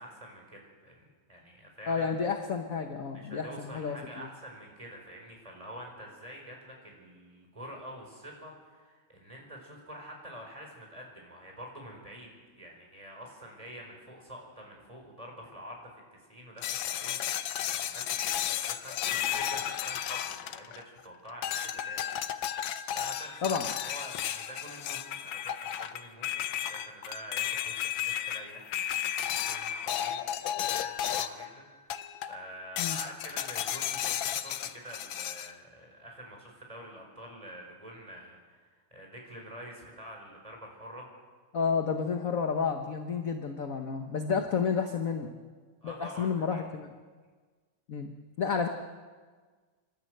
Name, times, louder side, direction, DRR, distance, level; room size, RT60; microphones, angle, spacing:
voice 1, 0.0-2.1 3.1-12.3 12.5-22.2 22.5-23.6 23.8-28.7 29.0-41.1 45.8-46.7, equal, 15° right, 0 dB, 4.9 m, -47 dB
voice 2, 1.9-4.0 23.4-23.7 32.8-33.0 41.5-45.3 45.8-46.9 47.9-48.7, left 6 dB, 45° left, 5 dB, 1.3 m, -31 dB
sound 1, 16.6-21.0 21.4-31.5 31.9-32.4 32.8-35.5, left 10 dB, 70° left, 1.5 m, -33 dB
27.0 x 12.5 x 7.9 m, 1.5 s
omnidirectional pair, 2.4 m